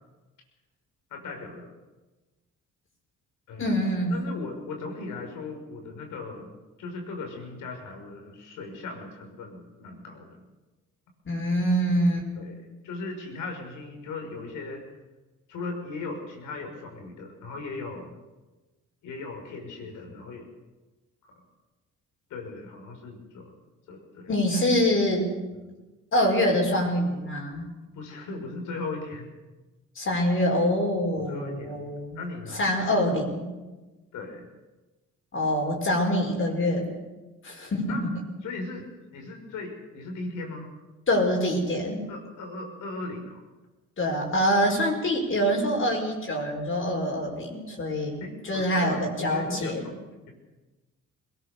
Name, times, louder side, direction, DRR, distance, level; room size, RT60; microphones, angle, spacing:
voice 1, 1.1-1.7 3.5-3.8 4.1-6.5 6.8-10.4 12.4-14.8 15.5-18.1 19.0-20.5 21.3-21.4 22.3-23.5 23.9-24.3 25.6-25.7 27.9-29.3 31.2-31.9 32.2-32.6 34.1-34.5 37.9-38.0 38.4-38.9 39.1-40.7 42.1-43.4 48.2-49.9, left 3 dB, 85° left, 3 dB, 5.7 m, -38 dB
voice 2, 3.6-4.2 11.3-12.3 24.3-25.3 26.1-27.7 30.0-32.2 32.5-33.5 35.3-36.9 37.4-38.1 41.1-42.1 44.0-49.8, equal, 45° left, 0 dB, 5.3 m, -25 dB
22.0 x 18.0 x 6.9 m, 1.2 s
cardioid pair, 90°, 30 cm